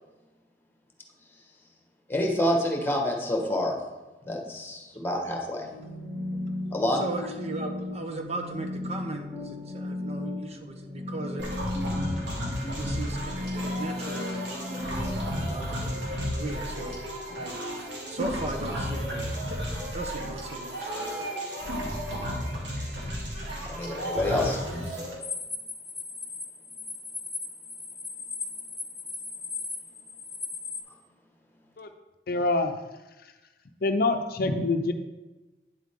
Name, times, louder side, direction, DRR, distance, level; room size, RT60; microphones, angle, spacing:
voice 1, 2.1-3.7 4.2-5.7 6.7-7.0 23.6-24.6, left 1 dB, 15° left, 1 dB, 1.4 m, -27 dB
sound 1, 5.5-15.4, left 2 dB, 20° right, 1.7 m, -35 dB
voice 2, 7.0-11.5 12.7-15.1 15.4-17.0 17.3-19.5 19.9-21.3, right 2 dB, 40° right, 5 dB, 0.9 m, -38 dB
sound 2, 11.4-25.1, equal, 75° right, 2.3 m, -33 dB
sound 3, 25.2-30.8, left 4 dB, 5° right, 2.4 m, -37 dB
voice 3, 32.3-32.7 33.8-34.9, left 2 dB, 60° left, 7 dB, 0.6 m, -25 dB
9.5 x 7.5 x 3.7 m, 1.1 s
head